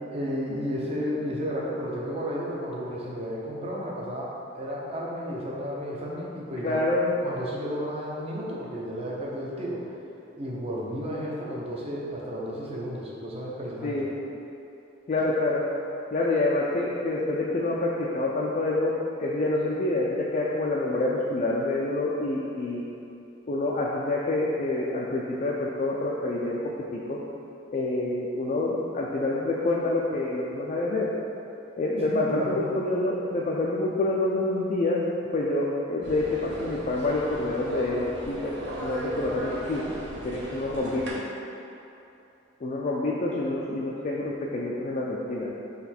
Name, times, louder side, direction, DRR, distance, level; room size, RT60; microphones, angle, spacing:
voice 1, 0.1-6.9 7.2-9.8 10.4-14.1 32.0-32.6, equal, 30° right, -4 dB, 0.7 m, -33 dB
voice 2, 6.6-7.1 13.8-14.1 15.1-15.6 16.1-22.8 23.5-26.6 26.9-27.2 27.7-31.1 31.8-35.0 35.3-38.6 38.8-39.8 40.2-41.2 42.6-45.5, left 2 dB, 40° left, -4 dB, 0.4 m, -27 dB
sound 1, 36.0-41.1, right 1 dB, 65° right, 0.8 m, -37 dB
4.0 x 3.0 x 4.3 m, 2.8 s
head